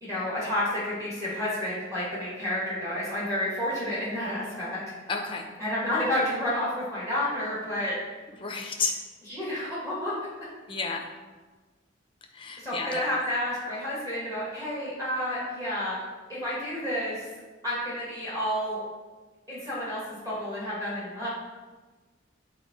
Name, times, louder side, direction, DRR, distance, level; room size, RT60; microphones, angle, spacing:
voice 1, 0.0-4.8 5.6-7.9 9.3-10.1 12.6-16.0 16.3-17.3 17.6-18.8 19.5-21.3, left 1 dB, 15° right, -8 dB, 2.3 m, -30 dB
voice 2, 5.1-5.5 8.4-9.0 10.7-11.0 12.3-13.0, left 4 dB, 25° left, 2 dB, 0.8 m, -31 dB
8.7 x 3.9 x 4.5 m, 1.3 s
head